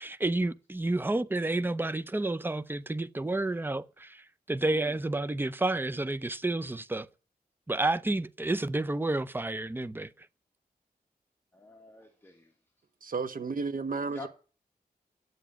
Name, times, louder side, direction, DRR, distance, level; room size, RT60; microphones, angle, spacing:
voice 1, 0.0-7.1 7.7-10.1, right 2 dB, 15° right, 0.6 m, -30 dB
voice 2, 11.5-12.5 14.1-14.3, left 2 dB, 15° left, 1.6 m, -47 dB
voice 3, 13.0-14.3, right 4 dB, 60° right, 1.1 m, -32 dB
9.7 x 7.2 x 8.9 m
wide cardioid pair, 120°, 16 cm